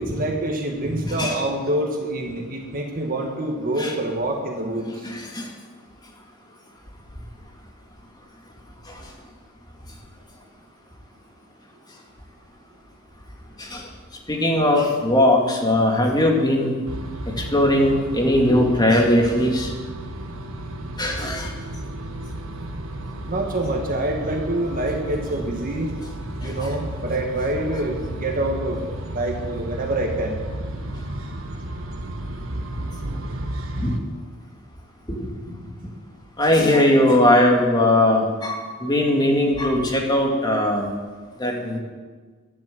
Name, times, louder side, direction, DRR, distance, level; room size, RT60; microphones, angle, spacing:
voice 1, 0.0-5.1 23.3-25.9 26.4-28.8 29.1-30.4, right 1 dB, 40° right, 2 dB, 1.6 m, -26 dB
voice 2, 1.0-1.3 3.8-3.9 5.0-5.4 13.6-13.8 14.3-16.7 17.5-19.7 21.0-21.5 26.6-26.7 33.8-34.0 35.1-35.2 35.5-35.6 36.4-40.9 41.4-41.8, left 1 dB, 20° left, 0 dB, 2.3 m, -19 dB
sound 1, 16.9-34.0, right 1 dB, 65° right, 1.3 m, -33 dB
11.5 x 10.5 x 7.8 m, 1.4 s
head